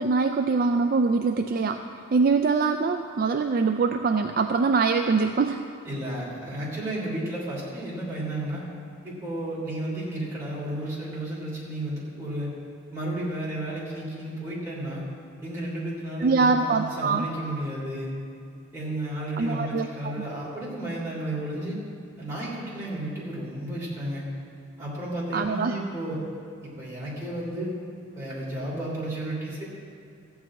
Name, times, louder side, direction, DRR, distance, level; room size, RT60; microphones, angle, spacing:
voice 1, 0.0-1.8 2.1-5.7 16.2-17.3 19.4-20.1 25.3-25.7, right 4 dB, 45° right, 6 dB, 0.3 m, -23 dB
voice 2, 5.8-8.6 9.0-12.5 12.9-15.0 15.4-18.1 18.7-21.8 22.2-24.2 24.8-26.2 26.6-27.8 28.1-29.6, right 1 dB, 15° right, -7 dB, 3.3 m, -32 dB
14.0 x 4.8 x 8.7 m, 2.4 s
head